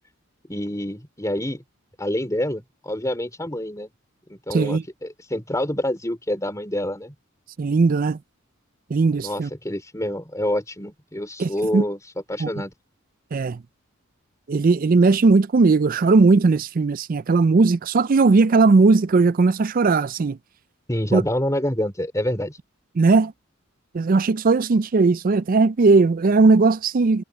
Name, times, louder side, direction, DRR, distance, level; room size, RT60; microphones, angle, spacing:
voice 1, 0.5-1.6 2.0-3.9 4.3-7.1 9.2-12.0 12.3-12.7 20.9-22.6, left 1 dB, 15° left, 4.0 m, -27 dB
voice 2, 4.5-4.8 7.6-8.2 8.9-9.5 11.4-11.8 12.4-12.5 13.3-13.6 14.5-20.4 21.1-21.2 23.0-23.3 23.9-27.2, right 3 dB, 40° right, 0.4 m, -18 dB
head